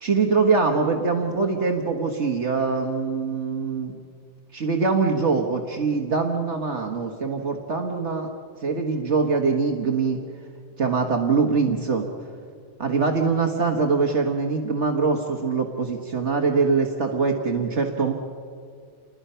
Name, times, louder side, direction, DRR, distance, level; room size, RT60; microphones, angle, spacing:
voice 1, 0.0-4.0 4.5-8.3 8.6-10.2 10.8-12.1 12.8-18.1, right 4 dB, 60° right, 2 dB, 1.7 m, -23 dB
28.5 x 21.0 x 5.7 m, 2.2 s
omnidirectional pair, 1.3 m